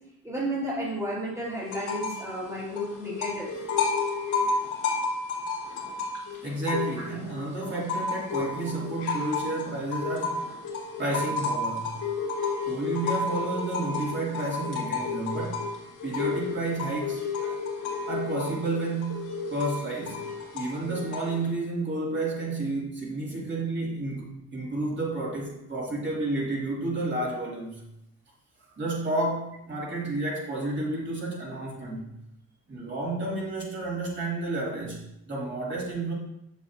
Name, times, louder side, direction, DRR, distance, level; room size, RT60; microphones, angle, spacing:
voice 1, 0.2-3.5, right 1 dB, 10° right, -7 dB, 2.2 m, -32 dB
sound 1, 1.7-2.3 2.6-7.2 7.6-21.5, left 4 dB, 85° left, 2.3 m, -31 dB
voice 2, 6.4-10.4 11.0-12.0 12.7-15.6 16.0-17.6 18.1-20.2 20.5-27.8 28.8-32.1 32.7-36.1, right 2 dB, 35° right, -5 dB, 2.8 m, -31 dB
7.2 x 6.9 x 2.9 m, 0.80 s
cardioid pair, 90°, 30 cm